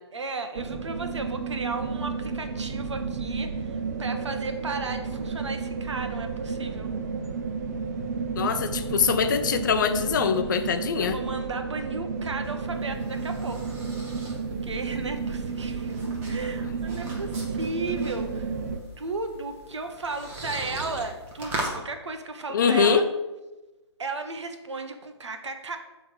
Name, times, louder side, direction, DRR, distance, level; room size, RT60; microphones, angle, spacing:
voice 1, 0.1-6.9 8.8-8.9 11.0-13.7 14.6-16.0 16.2-18.5 19.0-23.0 24.0-25.8, right 3 dB, 75° right, 6 dB, 1.2 m, -35 dB
sound 1, 0.5-18.8, right 4 dB, 35° right, 0.7 m, -32 dB
voice 2, 8.3-11.2 22.5-23.1, left 6 dB, 40° left, 8 dB, 0.6 m, -23 dB
sound 2, 12.2-21.8, right 1 dB, 15° right, 1.1 m, -40 dB
8.4 x 3.6 x 6.6 m, 1.1 s
hypercardioid pair, 155°, 15 cm